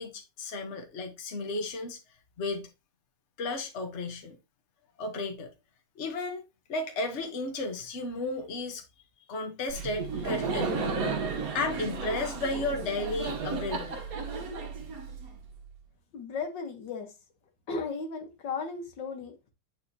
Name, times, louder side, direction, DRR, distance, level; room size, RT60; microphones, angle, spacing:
voice 1, 0.0-2.0 2.4-2.7 3.4-4.4 5.0-5.5 6.0-6.4 6.7-8.8 9.3-14.0, left 3 dB, 40° left, 1.4 m, -34 dB
Laughter, 9.7-15.5, right 4 dB, 55° right, 1.4 m, -33 dB
voice 2, 16.1-17.1 17.7-19.3, left 4 dB, 75° left, 1.8 m, -35 dB
8.6 x 4.4 x 2.8 m
omnidirectional pair, 1.9 m